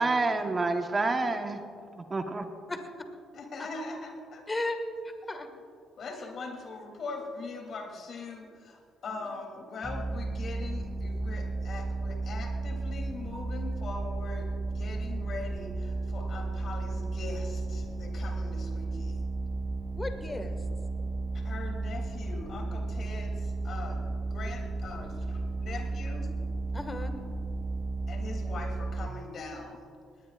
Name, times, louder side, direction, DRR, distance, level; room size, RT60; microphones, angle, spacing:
voice 1, 0.0-1.6 2.0-2.5, right 3 dB, 30° right, 6 dB, 1.3 m, -28 dB
voice 2, 3.3-4.4 6.0-19.2 21.3-26.3 28.1-29.9, left 3 dB, 55° left, 2 dB, 3.1 m, -41 dB
voice 3, 4.5-4.8 5.0-5.5 9.1-9.3 19.9-20.7 26.7-27.1, left 2 dB, 25° left, 6 dB, 1.9 m, -35 dB
sound 1, 9.8-29.1, right 3 dB, 15° right, 0.9 m, -34 dB
20.5 x 18.0 x 2.5 m, 2.4 s
hypercardioid pair, 55°, 0 cm